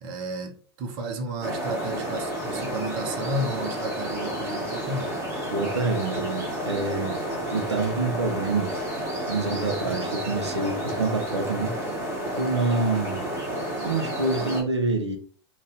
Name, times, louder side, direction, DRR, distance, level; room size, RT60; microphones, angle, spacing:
voice 1, 0.0-5.1, right 1 dB, 40° right, 0.7 m, -32 dB
sound 1, 1.4-14.6, right 1 dB, 20° right, 1.3 m, -31 dB
voice 2, 5.5-8.7 9.3-11.8 12.4-13.3 13.8-15.2, right 3 dB, 90° right, 0.7 m, -27 dB
2.6 x 2.4 x 3.6 m
figure-of-eight pair, 100°, 14 cm